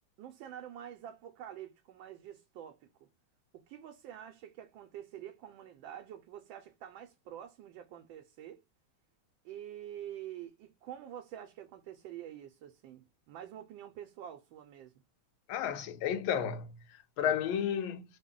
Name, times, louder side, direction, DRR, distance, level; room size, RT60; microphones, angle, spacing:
voice 1, 0.2-2.8 3.5-8.6 9.4-14.9, right 11 dB, 75° right, 1.3 m, -47 dB
voice 2, 15.5-16.7 17.2-18.0, left 8 dB, 85° left, 1.4 m, -31 dB
3.6 x 2.1 x 3.7 m
omnidirectional pair, 2.2 m